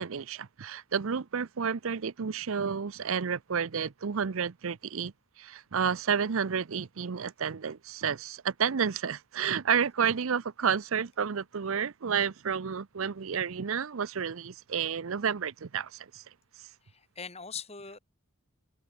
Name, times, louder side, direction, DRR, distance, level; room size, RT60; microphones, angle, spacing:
voice 1, 0.0-16.2, right 7 dB, 70° right, 0.6 m, -31 dB
voice 2, 16.8-18.0, left 6 dB, 30° left, 2.6 m, -42 dB
head